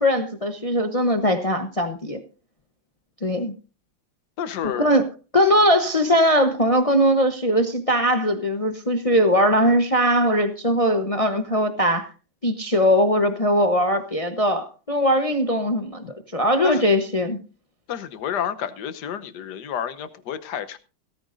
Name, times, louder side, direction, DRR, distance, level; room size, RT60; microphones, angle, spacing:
voice 1, 0.0-2.2 3.2-3.5 4.6-5.0 5.3-12.1 12.4-17.4, equal, 40° left, 0.4 m, -20 dB
voice 2, 4.4-4.9 16.6-16.8 17.9-20.8, left 8 dB, 60° left, 1.3 m, -30 dB
17.5 x 14.5 x 2.6 m
omnidirectional pair, 2.4 m